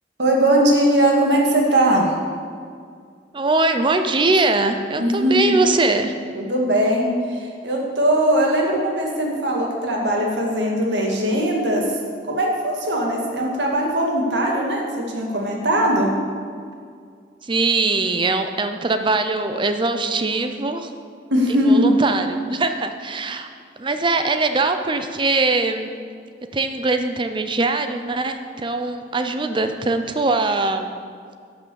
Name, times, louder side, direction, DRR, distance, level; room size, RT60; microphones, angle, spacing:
voice 1, 0.2-2.1 5.0-5.6 6.4-11.8 12.3-16.1 21.3-21.9, right 1 dB, 75° right, -1 dB, 2.0 m, -20 dB
voice 2, 3.3-6.1 17.4-20.9 21.5-23.5 23.8-25.9 26.5-30.9, right 3 dB, 25° right, 7 dB, 0.6 m, -21 dB
11.5 x 6.0 x 7.0 m, 2.1 s
head